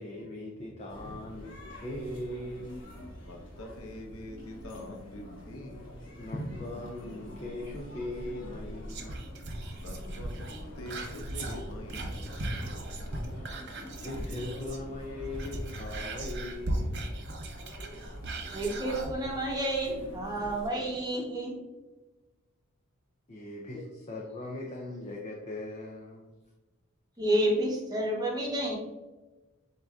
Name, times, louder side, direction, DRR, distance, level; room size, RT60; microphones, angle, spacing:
voice 1, 0.0-2.7 6.2-9.2 10.1-10.2 13.3-13.6 14.0-16.9 23.3-26.3, left 1 dB, 30° left, -1 dB, 0.5 m, -40 dB
sound 1, 0.9-20.7, equal, 60° left, 1.2 m, -45 dB
voice 2, 3.3-6.6 9.8-12.5, left 1 dB, 80° left, 2 dB, 0.8 m, -43 dB
Whispering, 8.9-14.9 15.2-19.1 19.6-19.7, right 1 dB, 50° right, 0.7 m, -38 dB
voice 3, 18.5-21.5 27.2-28.8, right 1 dB, 20° right, -2 dB, 0.9 m, -30 dB
7.7 x 2.6 x 2.3 m, 1.1 s
head